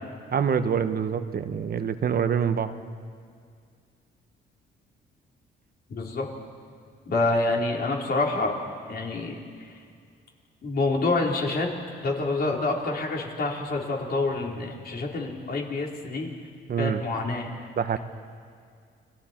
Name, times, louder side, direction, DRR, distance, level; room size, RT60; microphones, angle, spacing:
voice 1, 0.3-2.8 16.7-17.0 17.8-18.0, right 7 dB, 50° right, 9 dB, 1.1 m, -25 dB
voice 2, 5.9-6.3 7.1-8.6 8.9-9.4 10.6-11.7 12.0-16.3 16.8-17.5, left 2 dB, 50° left, -1 dB, 4.1 m, -27 dB
29.5 x 21.5 x 4.5 m, 2.2 s
cardioid pair, 90°, 20 cm